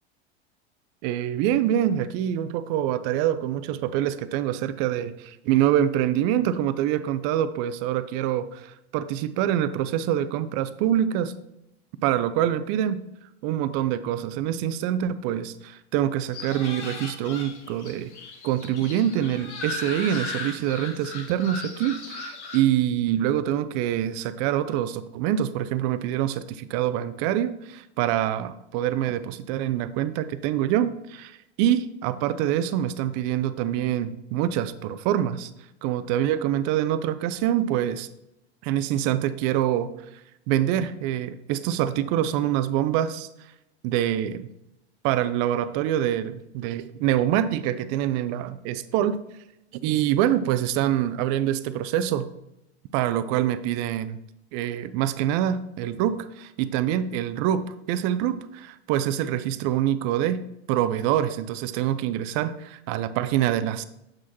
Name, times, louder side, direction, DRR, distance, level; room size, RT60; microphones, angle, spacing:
voice 1, 1.0-11.3 12.0-13.0 13.4-18.1 18.4-35.5 35.8-38.1 38.6-39.9 40.5-43.3 43.8-44.5 45.0-49.2 49.8-52.3 52.9-54.2 54.5-63.8, right 11 dB, 50° right, 14 dB, 0.5 m, -25 dB
sound 1, 16.3-22.6, left 3 dB, 85° left, 1.2 m, -37 dB
7.5 x 6.2 x 2.9 m, 0.88 s
hypercardioid pair, 95°, 34 cm